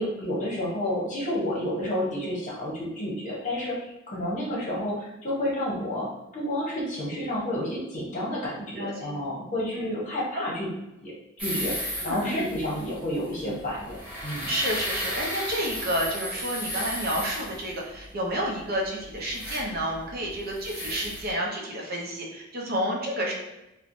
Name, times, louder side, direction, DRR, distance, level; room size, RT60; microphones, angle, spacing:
voice 1, 0.0-3.8 4.1-6.1 6.3-10.7 11.0-11.1 11.4-14.5, left 1 dB, 40° left, -5 dB, 0.9 m, -30 dB
voice 2, 8.8-9.2 9.7-9.9 10.3-10.4 12.0-12.5 13.4-13.5 14.5-23.3, equal, 50° right, -1 dB, 0.5 m, -30 dB
sound 1, 11.4-21.3, equal, 5° right, 0.8 m, -35 dB
3.0 x 2.1 x 2.5 m, 0.92 s
head